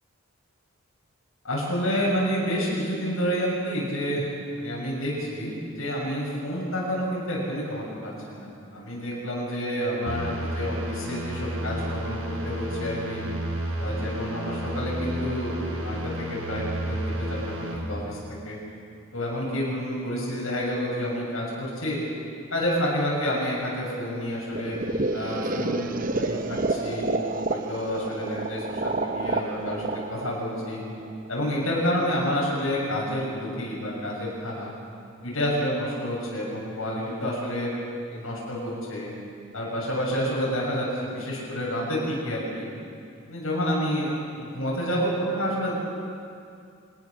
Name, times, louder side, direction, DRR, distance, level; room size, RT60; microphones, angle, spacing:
voice 1, 1.4-4.3 4.6-13.2 13.8-18.2 18.4-18.6 19.1-22.0 22.5-24.8 25.1-27.1 27.5-30.8 31.3-34.7 35.2-37.7 38.1-39.1 39.5-42.7 43.3-45.7, equal, 75° left, -5 dB, 7.1 m, -29 dB
sound 1, 10.1-17.7, equal, 80° right, 5.8 m, -31 dB
sound 2, 24.5-31.4, right 2 dB, 40° right, 0.8 m, -29 dB
26.0 x 19.5 x 6.7 m, 2.5 s
head